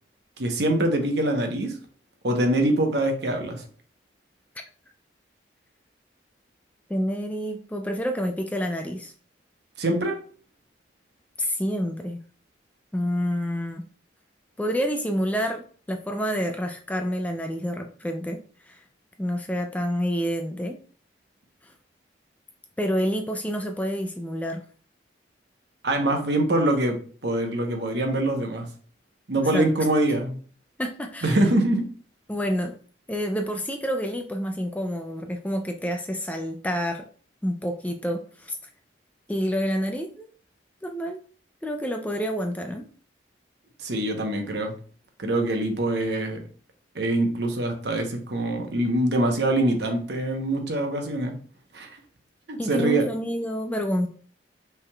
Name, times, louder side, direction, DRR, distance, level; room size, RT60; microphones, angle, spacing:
voice 1, 0.4-1.7 2.2-3.6 9.8-10.2 25.8-28.7 29.3-30.4 31.2-31.8 43.8-44.7 45.2-46.4 46.9-51.3 51.7-52.0 52.5-53.0, right 1 dB, 65° right, 4 dB, 0.9 m, -24 dB
voice 2, 6.9-9.1 11.4-12.2 12.9-13.8 14.6-18.4 18.7-18.8 19.2-20.8 21.6-21.7 22.8-24.6 29.5-29.7 30.8-31.4 32.3-32.7 33.1-37.0 37.4-38.6 39.3-40.3 40.8-41.2 41.6-42.9 52.6-54.1, equal, 10° left, 5 dB, 0.3 m, -28 dB
5.5 x 3.5 x 2.3 m, 0.43 s
head